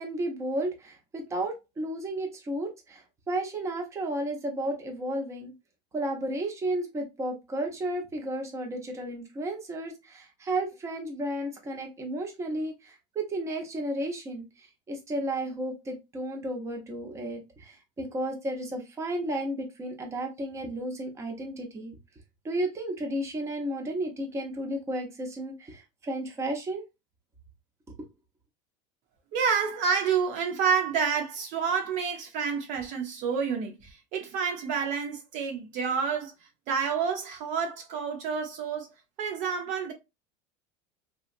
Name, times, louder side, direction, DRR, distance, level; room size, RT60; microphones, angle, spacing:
voice 1, 0.0-5.5 5.9-22.0 22.4-26.8, right 1 dB, 20° right, 0.8 m, -33 dB
voice 2, 29.3-36.3 36.7-38.9 39.2-39.9, right 6 dB, 55° right, 0.8 m, -29 dB
2.9 x 2.3 x 2.5 m
supercardioid pair, 130°, 15 cm